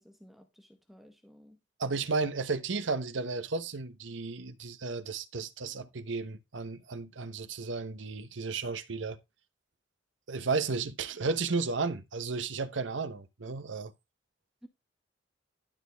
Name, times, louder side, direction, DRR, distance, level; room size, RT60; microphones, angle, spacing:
voice 1, 0.0-1.6 14.6-14.7, equal, ahead, 0.9 m, -55 dB
voice 2, 1.8-9.2 10.3-13.9, right 4 dB, 90° right, 0.9 m, -33 dB
12.0 x 6.2 x 3.4 m
head